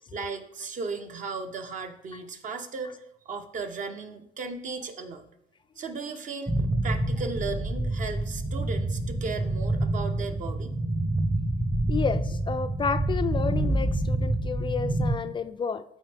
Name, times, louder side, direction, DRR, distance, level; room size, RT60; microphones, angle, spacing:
voice 1, 0.1-3.0 3.2-5.2 5.8-6.5 6.8-10.7, right 4 dB, 50° right, 6 dB, 0.9 m, -35 dB
sound 1, 6.5-15.2, right 1 dB, 15° right, 0.8 m, -27 dB
voice 2, 11.9-15.8, left 6 dB, 30° left, 10 dB, 0.3 m, -30 dB
12.5 x 4.3 x 3.5 m, 0.81 s
cardioid pair, 110°, 17 cm